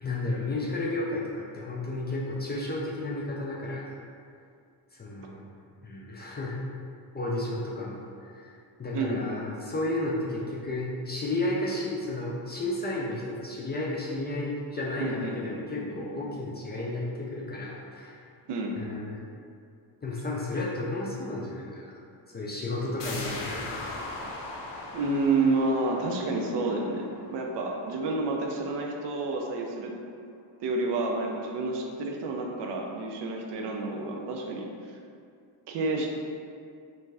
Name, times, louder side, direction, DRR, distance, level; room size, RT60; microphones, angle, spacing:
voice 1, 0.0-4.0 4.9-5.5 5.8-6.6 7.1-8.5 8.8-18.3 18.8-19.2 20.0-22.0 22.3-23.9, left 2 dB, 25° left, -4 dB, 0.4 m, -32 dB
voice 2, 15.0-16.4 18.5-18.7 24.9-30.0 30.6-34.7 35.7-36.1, right 3 dB, 65° right, 0 dB, 0.5 m, -29 dB
sound 1, 23.0-28.5 28.8-28.9, left 2 dB, 75° left, 0.6 m, -40 dB
2.6 x 2.2 x 3.2 m, 2.4 s
cardioid pair, 80°, 45 cm